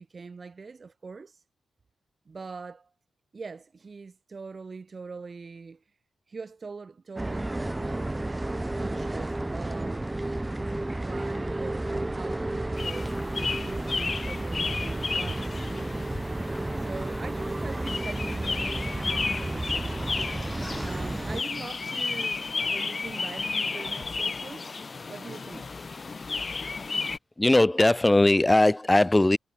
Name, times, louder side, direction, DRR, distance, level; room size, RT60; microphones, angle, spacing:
voice 1, 0.0-1.4 2.3-2.9 3.3-5.8 6.3-8.2 8.7-10.2 10.7-13.2 13.6-15.6 16.8-20.2 20.8-24.7 25.1-25.7, right 4 dB, 40° right, 3.8 m, -42 dB
sound 1, 7.2-21.4, right 2 dB, 15° right, 6.3 m, -32 dB
sound 2, 12.8-27.2, left 4 dB, 40° left, 2.4 m, -33 dB
voice 2, 27.4-29.4, left 1 dB, 15° left, 1.7 m, -19 dB
cardioid pair, 95°, 0 cm